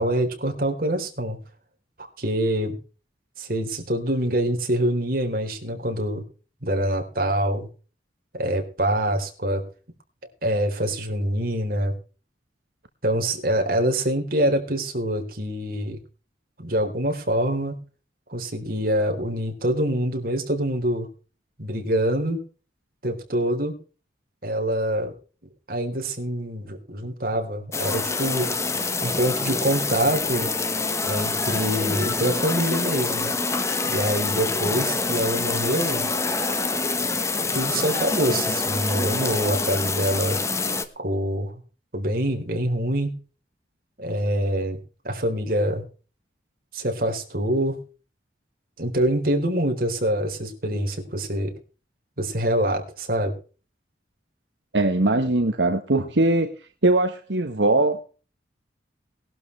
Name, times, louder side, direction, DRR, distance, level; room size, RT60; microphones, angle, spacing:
voice 1, 0.0-1.4 2.0-2.8 3.4-6.2 6.6-7.7 8.3-9.6 10.4-11.9 13.0-16.0 16.6-17.8 18.3-21.1 21.6-22.4 23.0-23.7 24.4-25.1 25.7-28.6 29.0-30.5 31.0-33.3 33.8-36.1 37.5-40.4 41.0-41.6 41.9-43.2 44.0-44.8 45.0-45.8 46.7-47.8 48.8-51.5 52.2-53.3, right 1 dB, 55° right, 4 dB, 3.8 m, -25 dB
sound 1, 27.7-40.8, left 3 dB, 15° left, 1.2 m, -26 dB
voice 2, 54.7-56.5 56.8-58.0, right 2 dB, 85° right, 6 dB, 1.4 m, -21 dB
19.5 x 12.0 x 3.3 m, 0.36 s
head